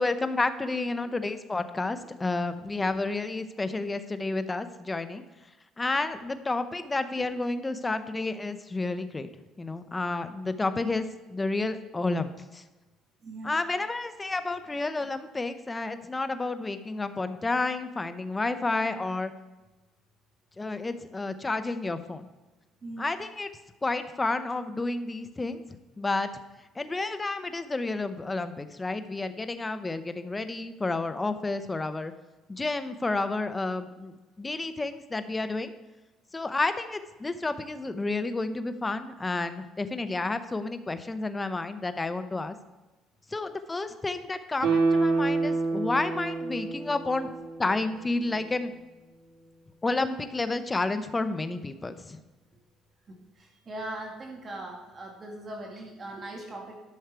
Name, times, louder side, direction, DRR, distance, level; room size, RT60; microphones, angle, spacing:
voice 1, 0.0-5.2 5.8-9.3 9.6-12.6 13.4-19.3 20.6-22.3 23.0-23.5 23.8-25.6 26.0-26.3 26.8-32.1 32.5-35.7 36.3-42.5 43.3-47.3 47.6-48.7 49.8-52.2, left 3 dB, 15° left, 10 dB, 0.7 m, -30 dB
Guitar, 44.6-47.9 48.2-48.3, right 3 dB, 70° right, 2.8 m, -27 dB
voice 2, 53.1-56.8, right 1 dB, 35° right, 1 dB, 2.1 m, -40 dB
11.5 x 6.4 x 4.6 m, 1.1 s
cardioid pair, 115°, 0 cm